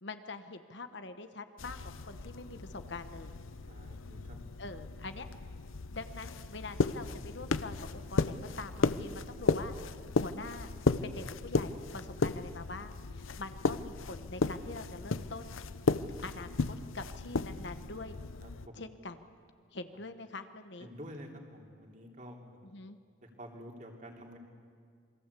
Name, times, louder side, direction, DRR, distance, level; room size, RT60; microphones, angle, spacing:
voice 1, 0.0-1.8 2.1-3.3 4.6-5.3 5.9-9.7 10.2-10.7 11.0-15.6 16.2-18.2 18.7-19.2 19.7-20.9 22.6-23.0, left 3 dB, 60° left, 9 dB, 1.2 m, -44 dB
sound 1, 1.6-18.7, left 3 dB, 85° left, 0.8 m, -35 dB
voice 2, 3.7-4.4 16.2-16.5 18.4-18.8 20.8-22.5 23.2-24.4, equal, 40° right, 1 dB, 3.3 m, -49 dB
28.0 x 22.5 x 8.4 m, 2.1 s
head